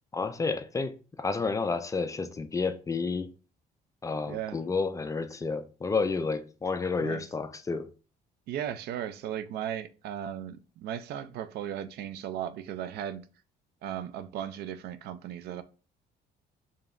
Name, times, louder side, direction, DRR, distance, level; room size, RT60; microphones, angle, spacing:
voice 1, 0.1-3.3 4.0-7.9, left 4 dB, 20° left, 0.3 m, -30 dB
voice 2, 4.3-4.6 7.0-7.2 8.5-13.3 13.8-15.6, right 10 dB, 70° right, 0.4 m, -36 dB
4.9 x 2.8 x 2.5 m
cardioid pair, 110°, 17 cm